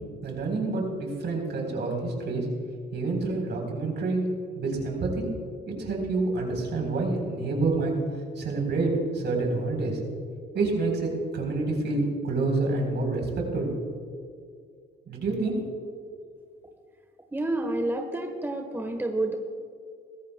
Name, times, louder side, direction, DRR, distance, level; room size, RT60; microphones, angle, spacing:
voice 1, 0.2-2.5 2.9-4.3 4.6-5.2 5.7-7.9 8.4-10.0 10.5-13.7 15.1-15.6, right 3 dB, 60° right, 1 dB, 3.8 m, -28 dB
voice 2, 17.3-19.3, right 2 dB, 10° right, 4 dB, 1.2 m, -29 dB
22.0 x 14.5 x 2.2 m, 2.2 s
cardioid pair, 90°, 20 cm